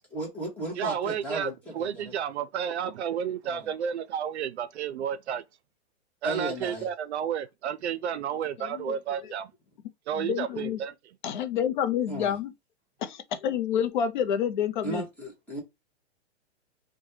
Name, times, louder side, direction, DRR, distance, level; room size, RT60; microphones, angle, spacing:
voice 1, 0.1-2.1 3.4-3.7 6.2-6.9 12.1-12.4 14.8-15.6, right 1 dB, 5° left, 0.9 m, -35 dB
voice 2, 0.8-5.4 6.2-9.5 10.1-10.9, right 8 dB, 70° right, 0.5 m, -31 dB
voice 3, 8.6-9.0 10.2-10.8 11.2-12.5 13.0-15.0, left 9 dB, 45° left, 0.5 m, -28 dB
3.2 x 2.2 x 2.7 m
hypercardioid pair, 155°, 35 cm